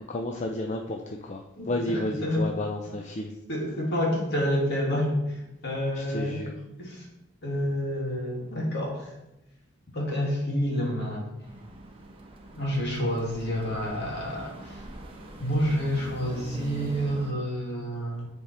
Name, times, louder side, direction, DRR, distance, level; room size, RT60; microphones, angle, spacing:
voice 1, 0.1-3.4 5.9-6.5, left 1 dB, 35° left, 2 dB, 0.5 m, -32 dB
voice 2, 3.5-6.4 6.8-7.1 7.4-9.1 9.9-11.3 12.6-14.8 15.4-18.3, equal, 55° left, -2 dB, 2.2 m, -28 dB
sound 1, 11.4-17.3, right 1 dB, 25° right, 0.9 m, -42 dB
9.6 x 3.7 x 4.3 m, 0.92 s
head